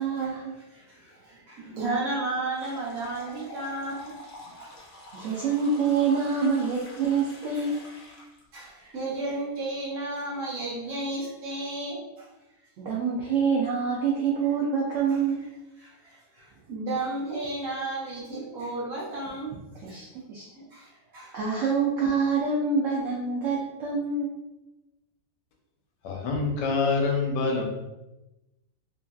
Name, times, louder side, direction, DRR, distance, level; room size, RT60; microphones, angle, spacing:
voice 1, 0.0-0.6 5.1-7.8 12.8-15.4 19.7-20.4 21.3-24.3, right 5 dB, 85° right, -4 dB, 0.6 m, -26 dB
voice 2, 0.7-4.2 4.6-4.7 5.3-5.4 8.5-12.3 15.1-15.2 15.8-19.5 19.9-20.0 20.6-21.3, right 2 dB, 60° right, -5 dB, 1.2 m, -33 dB
sound 1, 2.5-8.4, left 1 dB, 65° left, 0.9 m, -47 dB
voice 3, 26.0-27.7, left 4 dB, 85° left, 2 dB, 1.2 m, -26 dB
3.0 x 2.6 x 2.3 m, 0.99 s
omnidirectional pair, 1.9 m